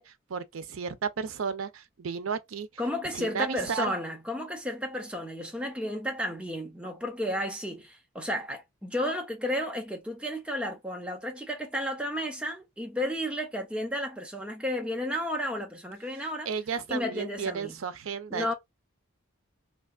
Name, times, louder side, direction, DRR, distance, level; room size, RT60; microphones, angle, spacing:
voice 1, 0.0-2.7 3.1-3.9 16.2-18.5, right 6 dB, 85° right, 0.5 m, -34 dB
voice 2, 2.8-16.5 16.9-17.8 18.3-18.5, equal, 5° right, 0.8 m, -32 dB
3.2 x 2.8 x 2.3 m
head